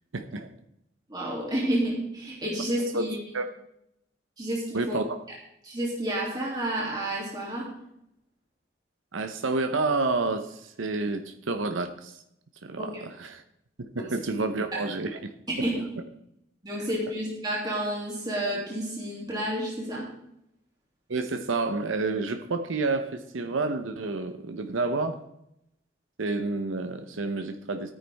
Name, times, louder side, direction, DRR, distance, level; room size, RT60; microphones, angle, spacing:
voice 1, 0.1-0.5 2.9-3.1 3.3-3.4 4.7-5.2 9.1-12.2 12.6-13.4 13.8-15.3 21.1-25.2 26.2-27.9, right 3 dB, 85° right, 7 dB, 0.9 m, -29 dB
voice 2, 1.1-3.2 4.4-5.0 5.6-7.7 12.8-12.9 13.9-14.0 14.7-14.8 15.6-15.8 16.6-20.0, right 1 dB, 20° right, -4 dB, 2.7 m, -30 dB
14.0 x 9.5 x 3.5 m, 0.78 s
head